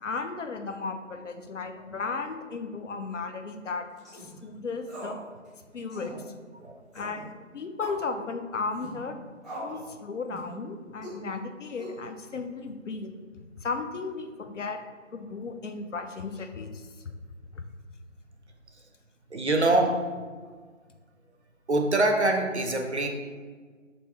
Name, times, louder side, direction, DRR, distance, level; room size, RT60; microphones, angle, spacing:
voice 1, 0.0-3.8 4.2-5.2 5.7-6.1 6.9-9.2 9.6-13.1 13.4-14.8 15.1-16.8 17.5-17.6, left 4 dB, 65° left, 7 dB, 0.5 m, -35 dB
sound 1, 4.0-4.3 4.9-5.2 5.5-5.6 5.9-6.2 6.9-7.2 7.8-8.0 8.7-9.0 9.4-9.8 10.3-10.5 11.0-11.2 11.8-12.3, equal, ahead, 0.6 m, -40 dB
voice 2, 19.3-20.1 21.7-23.1, right 2 dB, 60° right, 3 dB, 0.5 m, -24 dB
3.0 x 2.7 x 4.3 m, 1.5 s
figure-of-eight pair, 165°, 39 cm